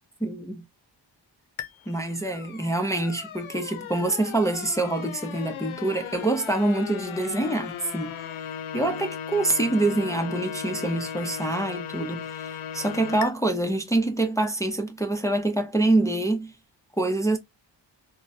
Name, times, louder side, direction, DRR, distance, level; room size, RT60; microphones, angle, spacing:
voice 1, 0.2-0.6 1.9-8.1 8.7-16.5 17.0-17.4, right 2 dB, 5° left, 0.6 m, -26 dB
sound 1, 1.6-13.3, left 8 dB, 80° left, 0.6 m, -37 dB
3.7 x 2.1 x 2.6 m
cardioid pair, 55°, 47 cm